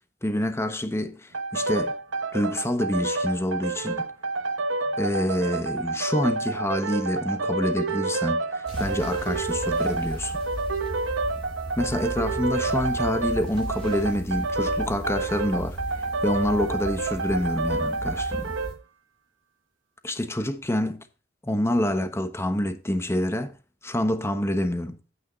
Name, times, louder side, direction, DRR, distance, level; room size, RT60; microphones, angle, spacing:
voice 1, 0.2-2.0 2.3-4.1 5.0-10.4 11.8-15.8 16.2-18.6 20.0-21.0 21.4-23.5 23.8-25.0, left 1 dB, 15° left, 1.1 m, -27 dB
sound 1, 1.3-18.8, right 3 dB, 80° right, 1.1 m, -29 dB
sound 2, 8.7-18.7, equal, 30° left, 5.1 m, -36 dB
9.6 x 8.7 x 4.0 m
head